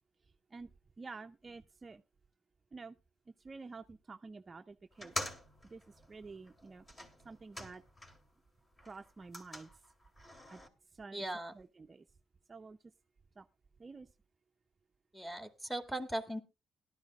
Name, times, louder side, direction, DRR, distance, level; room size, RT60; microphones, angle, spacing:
voice 1, 1.0-2.0 2.7-2.9 3.5-5.1 5.7-5.8 6.1-6.8 7.3-7.8 8.9-9.7 10.5-10.6 11.0-11.2 11.6-12.0 12.5-12.8 13.4-13.5 13.8-14.1, right 4 dB, 30° right, 6 dB, 0.6 m, -49 dB
sound 1, 4.9-8.4 8.7-10.7, left 1 dB, 25° left, 2.7 m, -46 dB
voice 2, 11.1-11.5 15.1-16.4, right 1 dB, 5° left, 6 dB, 2.2 m, -38 dB
17.5 x 12.5 x 2.4 m, 0.28 s
cardioid pair, 90°, 0 cm